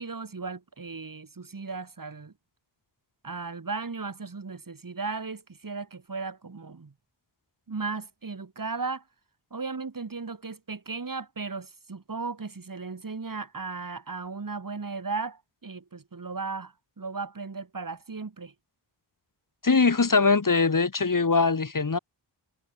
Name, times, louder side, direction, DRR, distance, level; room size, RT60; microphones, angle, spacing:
voice 1, 0.0-2.3 3.2-6.9 7.7-9.0 9.5-18.5, right 4 dB, 45° right, 3.9 m, -36 dB
voice 2, 19.6-22.0, left 4 dB, 45° left, 2.9 m, -22 dB
wide cardioid pair, 75°, 45 cm